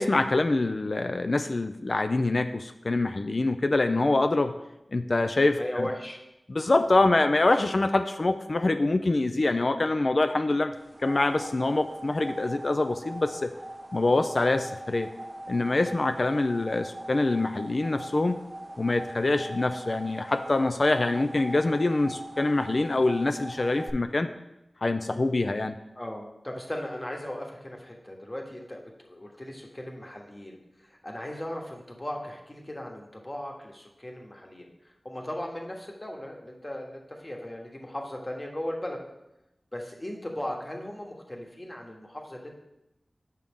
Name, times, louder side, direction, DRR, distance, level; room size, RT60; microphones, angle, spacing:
voice 1, 0.0-4.5 4.9-5.9 6.5-10.7 11.0-13.5 13.9-15.1 15.5-18.4 18.8-24.3 24.8-25.8, left 2 dB, 55° left, 8 dB, 0.3 m, -25 dB
voice 2, 5.6-6.2 26.0-34.7 35.0-39.0 39.7-42.6, left 1 dB, 25° left, 1 dB, 1.2 m, -37 dB
sound 1, 10.7-23.9, right 1 dB, 35° right, 0.5 m, -41 dB
7.5 x 5.4 x 3.6 m, 0.91 s
wide cardioid pair, 55°, 0 cm